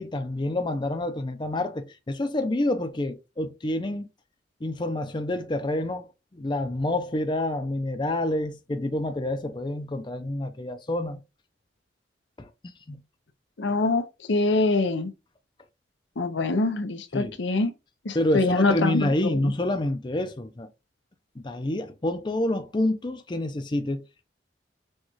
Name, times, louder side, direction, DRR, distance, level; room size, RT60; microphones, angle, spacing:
voice 1, 0.0-4.1 4.6-6.1 6.3-11.2 12.4-12.5 12.9-13.0 17.1-17.3 18.1-20.7 21.4-24.2, left 1 dB, 25° left, 0.5 m, -28 dB
voice 2, 13.6-15.1 16.2-17.7 18.0-19.5, left 3 dB, 85° left, 0.7 m, -24 dB
6.3 x 2.4 x 3.0 m
head